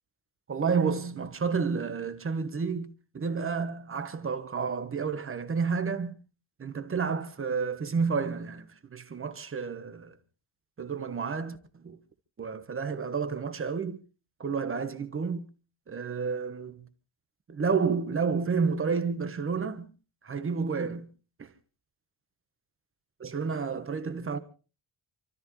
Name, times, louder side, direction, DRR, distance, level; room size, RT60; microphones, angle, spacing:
voice 1, 0.5-6.2 6.6-10.1 10.8-12.0 12.4-14.0 14.4-15.5 15.9-16.8 17.5-19.9 20.2-21.1 21.4-21.5 23.2-24.4, right 5 dB, 25° right, 1.3 m, -30 dB
28.0 x 13.5 x 3.2 m
cardioid pair, 165°, 50 cm